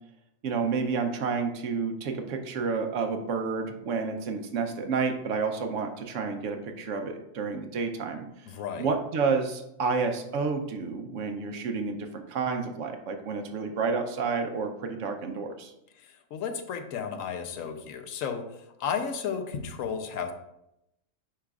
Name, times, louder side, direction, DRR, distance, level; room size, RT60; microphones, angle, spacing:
voice 1, 0.4-8.3 8.8-15.7, right 5 dB, 70° right, 6 dB, 1.0 m, -30 dB
voice 2, 8.5-8.9 16.0-20.3, left 7 dB, 85° left, 7 dB, 1.1 m, -33 dB
8.7 x 4.9 x 2.4 m, 0.86 s
omnidirectional pair, 1.4 m